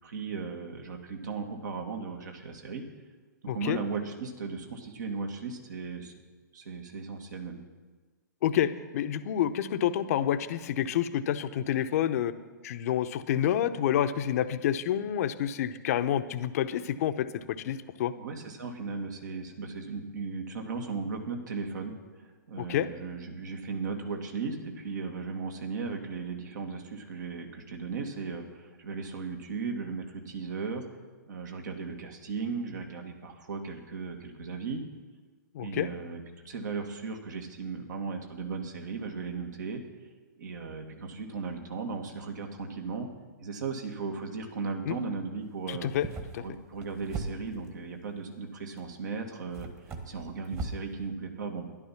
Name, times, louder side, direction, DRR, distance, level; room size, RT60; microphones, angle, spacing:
voice 1, 0.0-2.8 3.4-6.1 6.5-7.6 18.2-30.9 31.3-34.8 35.6-39.8 40.4-43.1 43.4-45.9 46.4-49.7 50.1-51.7, right 4 dB, 65° right, 3 dB, 2.2 m, -36 dB
voice 2, 3.5-3.8 8.4-12.3 12.6-18.1 22.6-22.9 35.5-35.9 44.9-45.0 45.7-46.1 46.3-46.4, left 10 dB, 50° left, 11 dB, 0.8 m, -28 dB
sound 1, 45.8-47.8 48.8-48.9 49.5-50.9, right 3 dB, 25° right, 1.6 m, -39 dB
12.5 x 11.0 x 5.9 m, 1.3 s
hypercardioid pair, 125°, 10 cm